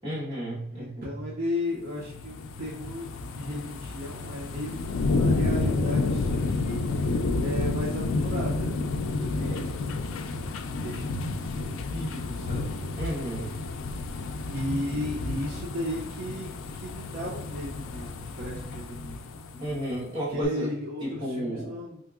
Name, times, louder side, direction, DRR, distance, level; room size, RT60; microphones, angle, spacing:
voice 1, 0.0-1.2 13.0-13.5 19.6-20.7 21.0-21.8, right 1 dB, 25° right, -8 dB, 1.4 m, -32 dB
voice 2, 0.7-8.7 9.1-9.7 10.8-13.0 14.5-19.3 19.5-19.8 20.3-22.0, left 1 dB, 45° right, -5 dB, 0.6 m, -35 dB
sound 1, 1.9-20.0 20.4-20.5, left 3 dB, 85° left, 0.3 m, -30 dB
3.6 x 2.8 x 2.4 m, 0.78 s
head